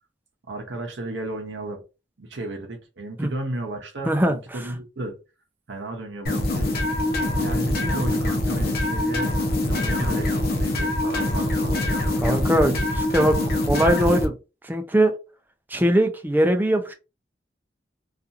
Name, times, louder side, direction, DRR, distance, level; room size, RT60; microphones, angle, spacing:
voice 1, 0.5-1.8 2.2-5.2 5.7-6.7 7.3-9.3 9.6-12.0, right 2 dB, 75° right, 0.7 m, -34 dB
voice 2, 4.0-4.4 12.2-13.4 13.7-14.3 14.6-15.2 15.7-16.9, right 1 dB, 10° right, 0.4 m, -21 dB
sound 1, 6.2-14.3, left 1 dB, 55° left, 0.6 m, -24 dB
2.7 x 2.4 x 2.5 m
head